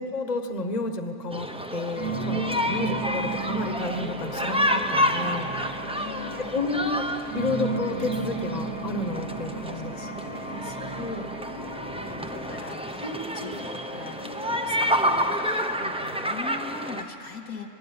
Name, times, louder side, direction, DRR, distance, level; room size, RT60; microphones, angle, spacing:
voice 1, 0.0-5.5 6.4-7.1 7.3-9.9 11.0-11.3 13.0-13.7, left 3 dB, 30° left, 7 dB, 1.4 m, -31 dB
sound 1, 1.3-17.0, equal, 5° right, 0.8 m, -30 dB
sound 2, 1.9-15.2, right 3 dB, 80° right, 3.2 m, -35 dB
voice 2, 2.7-3.1 5.9-6.7 9.9-11.5 12.0-17.7, left 4 dB, 90° left, 2 dB, 2.4 m, -42 dB
27.0 x 20.5 x 9.8 m, 2.7 s
omnidirectional pair, 1.5 m